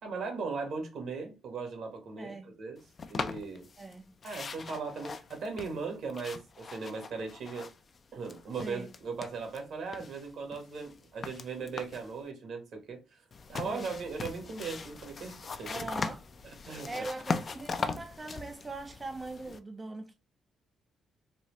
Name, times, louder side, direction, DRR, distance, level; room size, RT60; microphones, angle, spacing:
voice 1, 0.0-2.8 3.1-3.7 4.2-7.7 8.1-13.0 13.5-15.9 16.7-17.0, right 4 dB, 70° right, 1.4 m, -38 dB
voice 2, 2.2-2.5 3.8-4.1 8.6-8.9 13.7-14.0 15.7-16.2 16.9-20.2, right 2 dB, 25° right, 0.4 m, -41 dB
sound 1, 3.0-3.9 4.2-8.0 8.2-9.6 9.9-12.1 13.3-19.6, left 4 dB, 40° left, 0.4 m, -40 dB
4.1 x 2.3 x 3.0 m
cardioid pair, 90°, 0 cm